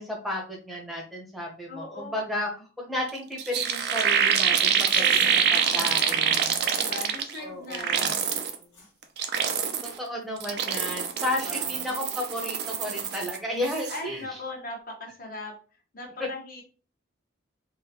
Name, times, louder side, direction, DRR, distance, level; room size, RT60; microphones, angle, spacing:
voice 1, 0.0-2.5 2.8-5.0 5.5-6.6 7.4-8.1 10.0-14.2, left 1 dB, ahead, -2 dB, 0.8 m, -33 dB
voice 2, 1.7-2.1 4.9-8.8 11.4-11.9 13.9-15.6 15.9-16.6, left 2 dB, 45° left, 0 dB, 1.0 m, -40 dB
sound 1, 3.1-3.2 3.4-7.4 7.7-8.5 9.0-10.0 10.4-13.4 13.6-14.0, right 7 dB, 55° right, 0.4 m, -25 dB
Chewing mastication, 4.8-9.1 9.3-9.6 9.9-10.8 11.0-11.3 11.6-12.3 12.7-12.8 13.9-14.3, left 4 dB, 70° left, 1.4 m, -47 dB
3.7 x 2.1 x 2.9 m, 0.37 s
head